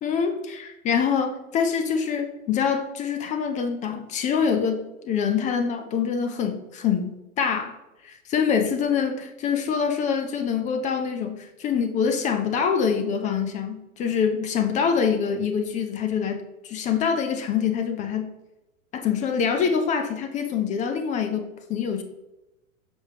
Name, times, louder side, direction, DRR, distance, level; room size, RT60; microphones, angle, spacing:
voice 1, 0.0-7.7 8.0-18.3 18.9-22.0, left 6 dB, 20° left, 6 dB, 0.5 m, -25 dB
7.0 x 5.2 x 2.9 m, 1.0 s
figure-of-eight pair, 100°, 41 cm